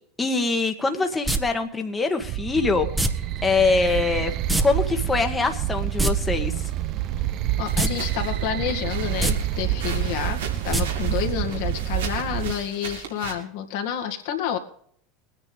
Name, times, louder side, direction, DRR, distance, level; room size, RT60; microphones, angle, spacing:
voice 1, 0.2-2.9 3.4-4.3 4.6-6.7, left 4 dB, 15° left, 5 dB, 1.6 m, -23 dB
sound 1, 1.3-1.4 3.0-3.1 4.5-4.7 4.9-5.0 5.8-6.1 7.7-7.9 8.3-8.4 9.1-9.3 10.7-10.8 11.2-11.3, right 2 dB, 10° right, 1.4 m, -21 dB
sound 2, 2.2-12.5, right 13 dB, 50° right, 0.7 m, -28 dB
voice 2, 7.6-14.6, left 9 dB, 65° left, 4 dB, 2.3 m, -29 dB
sound 3, 7.7-13.3, right 5 dB, 80° right, 3.2 m, -38 dB
22.5 x 9.8 x 3.5 m, 0.63 s
hypercardioid pair, 80°, 0 cm